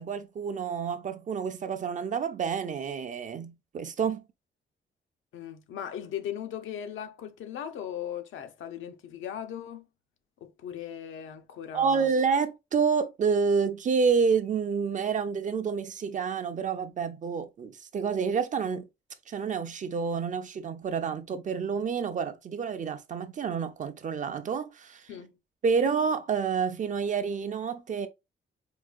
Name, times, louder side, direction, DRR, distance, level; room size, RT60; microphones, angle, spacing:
voice 1, 0.0-4.2 11.7-18.9 19.3-25.1 25.6-28.1, right 5 dB, 40° right, 0.5 m, -28 dB
voice 2, 5.3-9.9 10.4-12.1 25.1-25.4, left 9 dB, 85° left, 0.6 m, -38 dB
4.7 x 2.2 x 2.4 m
cardioid pair, 125°, 20 cm